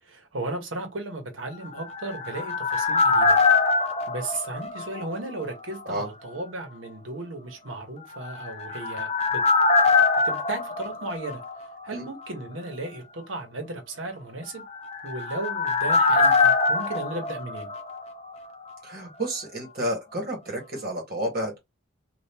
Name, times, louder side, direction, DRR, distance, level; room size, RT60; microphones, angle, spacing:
voice 1, 0.0-3.4 4.1-9.4 10.2-11.4 11.8-14.6 15.0-17.7, right 2 dB, 85° right, 1.0 m, -35 dB
sound 1, 1.7-5.5 5.8-5.9 8.3-12.0 12.2-12.3 14.6-18.5 18.7-18.8, left 4 dB, 30° left, 0.5 m, -23 dB
voice 2, 18.8-21.6, right 1 dB, 50° right, 1.4 m, -31 dB
2.8 x 2.5 x 3.4 m
head